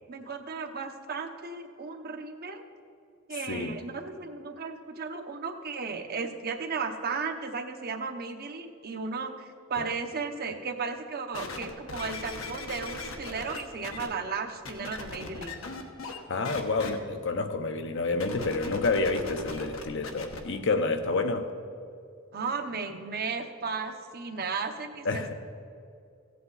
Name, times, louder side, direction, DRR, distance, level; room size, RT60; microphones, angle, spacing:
voice 1, 0.1-2.6 3.3-15.6 22.3-25.3, right 4 dB, 50° right, 6 dB, 0.8 m, -35 dB
sound 1, 11.3-14.1 14.6-16.2 16.4-16.9 18.1-20.4 21.1-21.2, left 3 dB, 85° left, 1.1 m, -39 dB
voice 2, 16.3-21.5 25.0-25.3, left 3 dB, 65° left, 7 dB, 0.8 m, -29 dB
15.0 x 8.5 x 4.0 m, 2.4 s
head